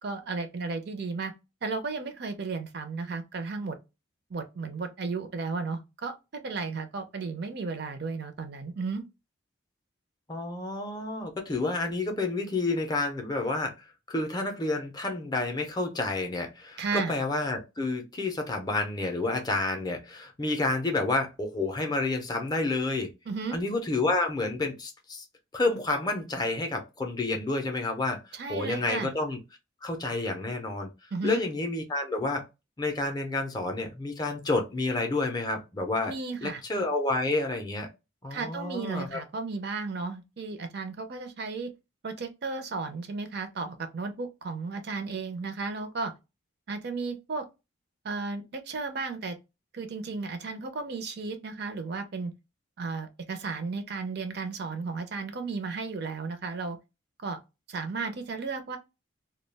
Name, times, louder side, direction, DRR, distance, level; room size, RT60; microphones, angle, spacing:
voice 1, 0.0-1.3 1.6-3.8 4.3-9.0 16.8-17.1 23.3-23.6 28.3-29.1 31.1-31.4 36.1-36.6 38.3-41.7 42.0-46.1 46.7-47.5 48.0-49.3 49.7-52.3 52.8-56.8 57.2-57.4 57.7-58.8, right 4 dB, 50° right, 0.4 m, -34 dB
voice 2, 10.3-13.7 14.1-23.1 23.5-25.2 25.5-28.2 28.5-29.4 29.8-30.9 31.2-32.4 32.8-36.1 36.4-37.9 38.2-39.2, left 2 dB, 20° left, 0.4 m, -29 dB
2.2 x 2.1 x 3.2 m
head